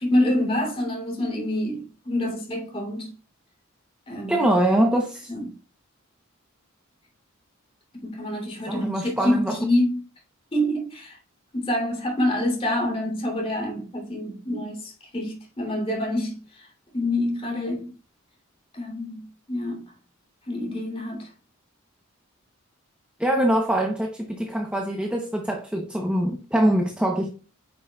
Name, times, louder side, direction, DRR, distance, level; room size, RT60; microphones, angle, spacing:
voice 1, 0.0-3.1 4.1-4.5 5.3-5.6 8.0-10.0 10.5-11.2 11.5-16.7 16.9-17.9 18.7-19.8 20.5-21.3, left 1 dB, 25° left, 3.0 m, -27 dB
voice 2, 4.3-5.3 8.7-9.6 23.2-27.3, right 1 dB, 5° right, 0.8 m, -23 dB
9.4 x 6.2 x 2.3 m
head